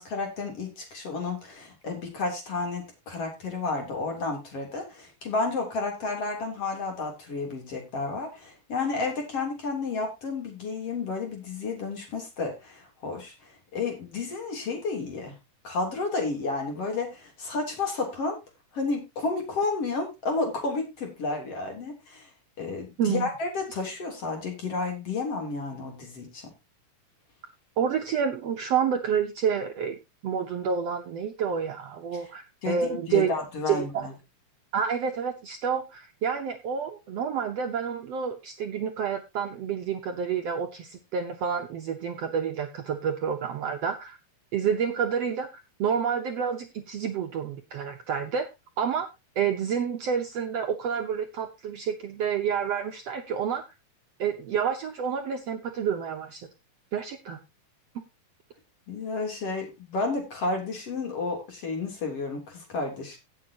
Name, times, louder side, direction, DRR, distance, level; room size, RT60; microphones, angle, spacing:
voice 1, 0.0-13.3 13.7-15.3 15.6-18.4 18.7-22.3 22.6-26.5 32.6-34.1 58.9-63.2, left 3 dB, 45° left, 2 dB, 4.1 m, -31 dB
voice 2, 23.0-23.3 27.8-30.0 30.2-33.3 33.7-34.1 34.7-44.2 44.5-48.5 48.8-49.1 49.4-53.6 54.2-56.4 56.9-57.4, right 7 dB, 65° right, 4 dB, 1.7 m, -29 dB
17.0 x 7.2 x 2.9 m, 0.24 s
omnidirectional pair, 3.8 m